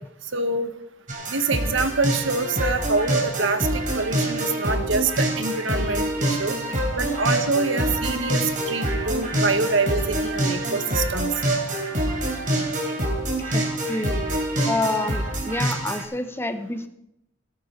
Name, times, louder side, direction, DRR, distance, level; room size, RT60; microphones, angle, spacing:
voice 1, 0.3-0.7 1.3-6.6 7.0-11.3, right 3 dB, 70° right, 8 dB, 1.4 m, -25 dB
sound 1, 1.1-16.0, right 1 dB, 40° right, 3.7 m, -26 dB
voice 2, 13.4-14.2 14.7-16.9, left 2 dB, 10° left, 9 dB, 0.8 m, -29 dB
17.5 x 12.5 x 4.0 m, 0.80 s
head